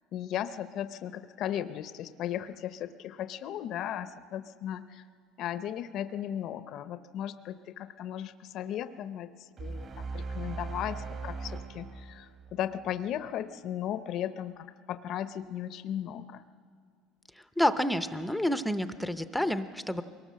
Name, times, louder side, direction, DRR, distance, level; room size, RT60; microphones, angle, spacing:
voice 1, 0.1-5.0 5.4-16.4, left 10 dB, 50° left, 12 dB, 0.6 m, -36 dB
sound 1, 9.6-12.9, right 4 dB, 40° right, 2.1 m, -39 dB
voice 2, 17.4-20.0, left 1 dB, ahead, 11 dB, 0.6 m, -29 dB
22.5 x 18.5 x 7.5 m, 2.1 s
cardioid pair, 135°, 0 cm